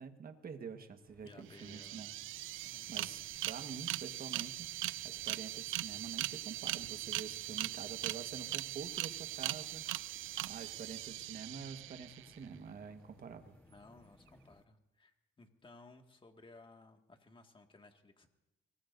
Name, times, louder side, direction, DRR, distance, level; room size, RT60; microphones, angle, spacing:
voice 1, 0.0-2.1 2.9-4.7 5.0-13.6, right 6 dB, 50° right, 7 dB, 1.5 m, -47 dB
sound 1, 1.1-14.6, left 1 dB, 5° left, 0.9 m, -64 dB
voice 2, 1.2-2.0 2.6-2.9 13.7-18.3, left 3 dB, 25° left, 4 dB, 2.0 m, -59 dB
sound 2, 1.3-1.4 1.5-12.4, right 15 dB, 85° right, 0.5 m, -40 dB
23.5 x 19.0 x 2.7 m, 0.94 s
cardioid pair, 90°, 20 cm